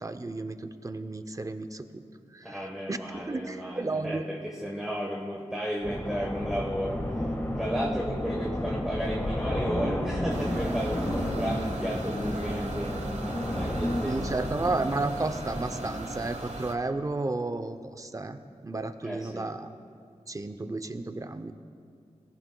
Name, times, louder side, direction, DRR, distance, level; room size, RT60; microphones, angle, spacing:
voice 1, 0.0-2.0 2.3-2.6 2.9-3.0 3.3-4.3 11.5-11.6 14.0-18.4 18.6-19.7 20.3-21.5, right 2 dB, 25° right, 9 dB, 0.6 m, -32 dB
voice 2, 2.4-7.0 7.6-13.0 13.5-14.5 19.0-19.5, equal, 5° right, -2 dB, 1.2 m, -34 dB
sound 1, 5.8-16.1, left 1 dB, 15° left, 1.5 m, -31 dB
sound 2, 10.3-16.7, right 2 dB, 65° right, 1.2 m, -39 dB
18.5 x 15.5 x 2.3 m, 2.3 s
wide cardioid pair, 85°, 12 cm